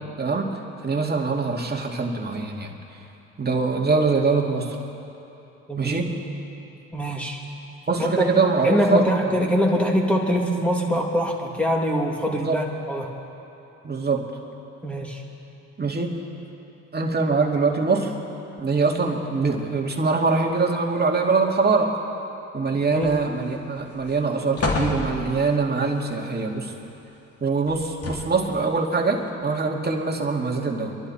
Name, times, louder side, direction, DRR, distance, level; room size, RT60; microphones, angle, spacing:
voice 1, 0.2-0.5 0.8-2.7 3.4-4.8 5.8-6.1 7.9-9.3 12.4-12.6 13.8-14.3 15.8-16.2 16.9-18.1 18.6-21.9 22.5-26.7 27.4-31.0, right 4 dB, 30° right, 0 dB, 2.3 m, -23 dB
voice 2, 5.7-6.0 6.9-7.4 8.2-8.3 8.6-13.1 14.8-15.2 22.8-23.1, equal, 5° left, -1 dB, 2.6 m, -23 dB
sound 1, 23.0-23.5 23.9-24.1 24.6-25.6 27.7-28.5 29.3-29.4, left 2 dB, 40° left, 2.9 m, -28 dB
24.5 x 11.5 x 4.3 m, 3.0 s
supercardioid pair, 65°, 35 cm